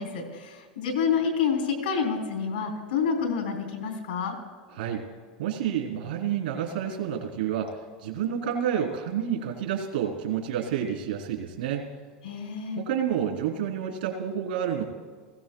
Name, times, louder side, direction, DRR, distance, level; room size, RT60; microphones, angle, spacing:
voice 1, 0.0-4.3 12.2-12.8, left 6 dB, 90° left, 2 dB, 3.6 m, -28 dB
voice 2, 4.7-5.0 5.4-11.9 12.7-14.8, right 9 dB, 85° right, 2 dB, 3.4 m, -29 dB
20.5 x 16.0 x 2.3 m, 1.5 s
hypercardioid pair, 105°, 5 cm